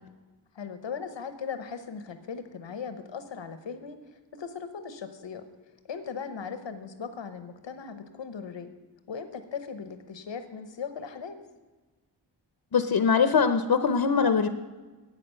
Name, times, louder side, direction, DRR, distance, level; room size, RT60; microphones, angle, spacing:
voice 1, 0.5-5.4 5.9-8.7 9.1-11.4, left 6 dB, 90° left, 10 dB, 0.9 m, -38 dB
voice 2, 12.7-14.5, left 6 dB, 60° left, 10 dB, 0.7 m, -22 dB
12.5 x 8.6 x 5.5 m, 1.3 s
wide cardioid pair, 95°, 43 cm